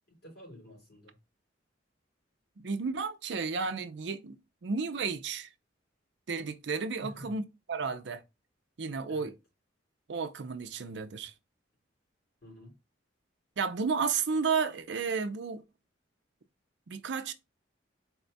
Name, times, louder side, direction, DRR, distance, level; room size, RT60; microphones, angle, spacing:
voice 1, 0.1-1.2 7.0-7.4 9.1-9.3 12.4-12.8, equal, 55° left, 2.8 m, -49 dB
voice 2, 2.6-4.4 4.6-5.5 6.3-7.4 7.7-8.2 8.8-9.3 10.1-11.3 13.6-15.6 16.9-17.3, right 5 dB, 65° right, 0.5 m, -32 dB
4.2 x 2.3 x 3.9 m
head